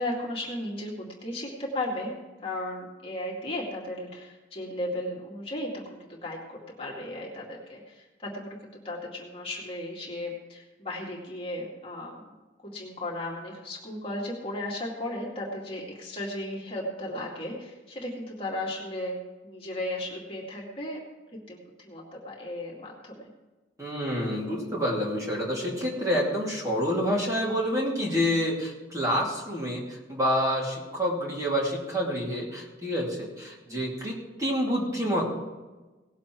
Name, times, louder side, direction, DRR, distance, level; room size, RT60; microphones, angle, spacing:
voice 1, 0.0-2.2 2.4-12.3 12.6-21.0 21.5-23.3 33.7-33.9, left 1 dB, 30° left, -3 dB, 2.2 m, -35 dB
voice 2, 23.8-35.2, equal, 20° right, -4 dB, 2.6 m, -28 dB
18.5 x 7.3 x 4.5 m, 1.2 s
head